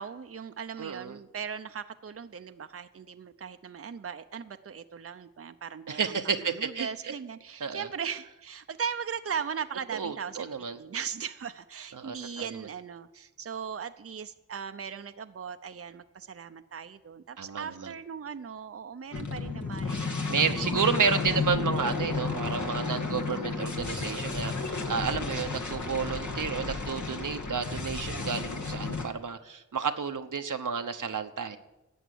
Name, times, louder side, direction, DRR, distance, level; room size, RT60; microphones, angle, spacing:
voice 1, 0.0-10.4 10.8-20.7 21.3-21.4, right 7 dB, 50° right, 9 dB, 0.6 m, -38 dB
voice 2, 0.8-1.2 5.9-7.1 7.6-7.9 9.9-10.8 11.9-12.6 17.4-17.9 20.3-31.6, right 6 dB, 85° right, 7 dB, 1.0 m, -31 dB
sound 1, 19.1-29.0, left 4 dB, 70° left, 1.9 m, -32 dB
12.5 x 8.0 x 9.5 m, 1.0 s
cardioid pair, 50°, 31 cm